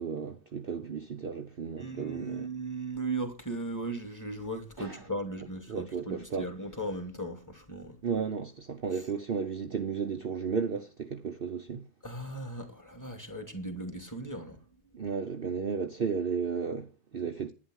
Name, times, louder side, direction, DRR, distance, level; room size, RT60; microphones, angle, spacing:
voice 1, 0.0-2.5 4.8-5.0 5.7-6.5 8.0-11.8 14.9-17.5, right 6 dB, 45° right, 1.0 m, -34 dB
voice 2, 1.8-8.0 12.0-14.6, right 2 dB, 10° left, 2.5 m, -37 dB
11.5 x 9.9 x 6.4 m
omnidirectional pair, 1.5 m